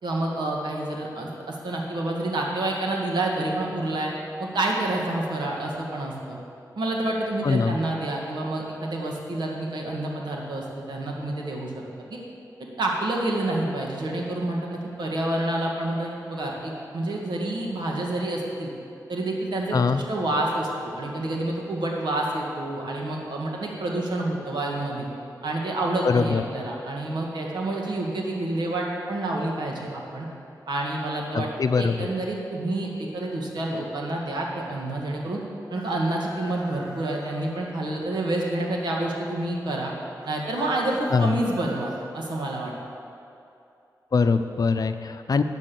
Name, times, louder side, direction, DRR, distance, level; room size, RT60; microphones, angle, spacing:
voice 1, 0.0-4.1 4.4-6.4 6.8-11.8 12.1-12.2 12.8-18.7 19.1-25.1 25.4-30.3 30.7-31.5 31.7-35.4 35.7-39.9 40.2-42.7, right 2 dB, 80° right, -1 dB, 1.8 m, -28 dB
voice 2, 7.4-7.8 19.7-20.0 26.0-26.4 31.3-32.1 41.1-41.4 44.1-45.4, left 5 dB, 60° left, 9 dB, 0.6 m, -22 dB
Chicken rooster, 35.7-37.6 40.2-42.0, right 1 dB, 55° right, 2.2 m, -43 dB
9.1 x 7.6 x 6.9 m, 2.7 s
cardioid pair, 60°, 7 cm